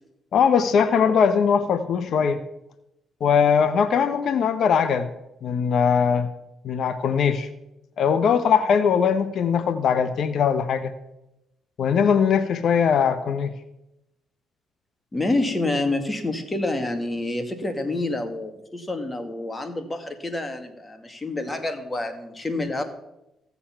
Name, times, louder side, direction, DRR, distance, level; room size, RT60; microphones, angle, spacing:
voice 1, 0.3-2.4 3.2-5.1 5.4-6.3 6.6-7.5 8.0-10.9 11.8-13.5, left 7 dB, 65° left, 11 dB, 0.8 m, -20 dB
voice 2, 15.1-22.8, left 2 dB, 20° left, 7 dB, 1.9 m, -28 dB
16.0 x 7.0 x 5.8 m, 0.88 s
cardioid pair, 90°, 0 cm